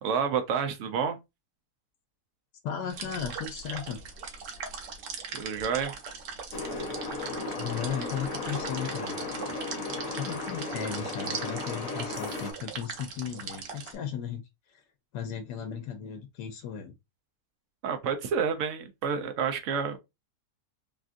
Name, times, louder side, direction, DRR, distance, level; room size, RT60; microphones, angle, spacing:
voice 1, 0.0-1.2 5.3-5.9 17.8-20.0, right 6 dB, 65° right, 0.8 m, -29 dB
voice 2, 2.6-4.0 7.5-9.2 9.5-9.6 10.2-14.4 14.7-14.8 15.1-16.9, left 8 dB, 80° left, 1.2 m, -36 dB
sound 1, 2.9-14.0, right 5 dB, 90° right, 1.3 m, -40 dB
sound 2, 6.5-12.5, left 3 dB, 55° left, 1.4 m, -35 dB
3.5 x 2.4 x 2.5 m
omnidirectional pair, 1.8 m